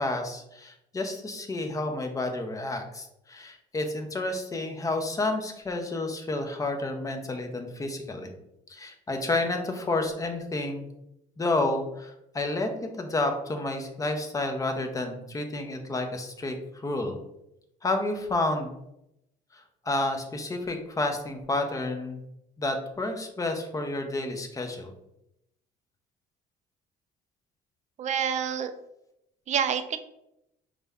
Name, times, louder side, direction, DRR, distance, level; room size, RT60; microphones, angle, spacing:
voice 1, 0.0-8.3 8.7-10.9 11.4-12.7 13.0-16.6 16.8-17.2 17.8-18.7 19.5-22.2 22.6-24.9, left 2 dB, 20° left, 5 dB, 0.6 m, -30 dB
voice 2, 28.0-28.7 29.5-30.0, right 8 dB, 45° right, 9 dB, 0.4 m, -27 dB
5.0 x 2.2 x 3.4 m, 0.82 s
cardioid pair, 110°, 17 cm